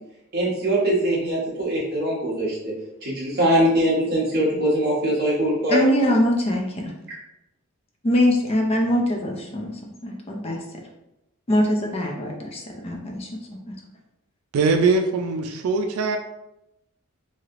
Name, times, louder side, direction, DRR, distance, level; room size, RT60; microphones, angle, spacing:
voice 1, 0.3-2.7 3.0-5.9, right 1 dB, 50° right, -5 dB, 1.1 m, -22 dB
voice 2, 5.7-6.9 8.0-10.6 11.5-13.4 13.7-13.8, left 1 dB, 30° left, 0 dB, 0.4 m, -23 dB
voice 3, 14.5-16.2, right 4 dB, 85° right, 5 dB, 0.3 m, -21 dB
3.2 x 2.7 x 2.4 m, 0.89 s
head